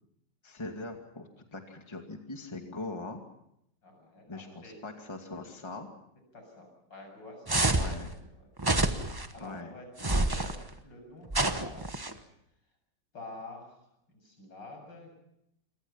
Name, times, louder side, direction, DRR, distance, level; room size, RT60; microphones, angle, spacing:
voice 1, 0.4-3.2 4.3-5.9 7.7-8.1 9.4-9.7, left 2 dB, 15° left, 3 dB, 2.4 m, -41 dB
voice 2, 3.8-4.8 6.3-7.8 8.1-8.5 9.0-10.6 10.8-12.2 13.1-15.2, left 2 dB, 80° left, 4 dB, 8.2 m, -49 dB
sound 1, 7.5-8.0 8.6-9.3 10.0-10.6 11.3-12.1, right 2 dB, 15° right, 1.0 m, -27 dB
27.5 x 24.0 x 5.7 m, 0.78 s
omnidirectional pair, 1.9 m